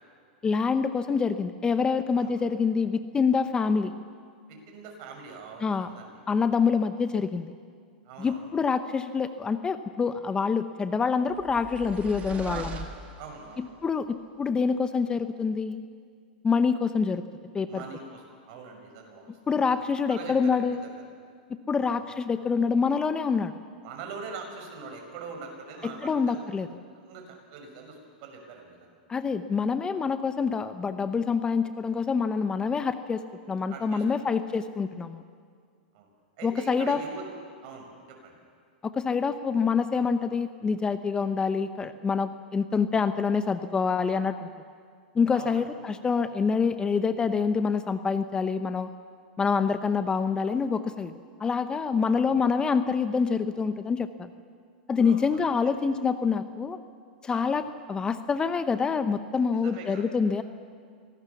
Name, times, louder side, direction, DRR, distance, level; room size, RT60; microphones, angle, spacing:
voice 1, 0.4-3.9 5.6-5.9 6.3-7.5 8.2-12.8 13.6-15.8 16.4-17.2 17.5-17.8 19.5-20.8 21.5-23.5 25.8-26.7 29.1-33.2 33.5-35.2 36.4-37.0 38.8-44.5 45.1-48.9 49.4-51.1 51.4-54.3 54.9-56.8 57.2-57.6 57.9-60.4, left 5 dB, 15° left, 11 dB, 0.8 m, -26 dB
voice 2, 4.5-6.2 8.1-8.5 12.4-13.7 17.7-19.7 20.1-20.9 21.8-22.0 23.8-26.4 26.9-27.2 27.5-28.9 33.7-34.0 35.9-36.1 36.4-37.2 37.6-38.4 45.3-45.6 52.0-52.2 55.0-55.7 57.3-57.5 59.6-60.0, right 5 dB, 55° right, 2 dB, 6.3 m, -43 dB
sound 1, 11.3-13.7, right 5 dB, 30° right, 2.1 m, -41 dB
25.0 x 18.0 x 7.0 m, 2.1 s
hypercardioid pair, 120°, 5 cm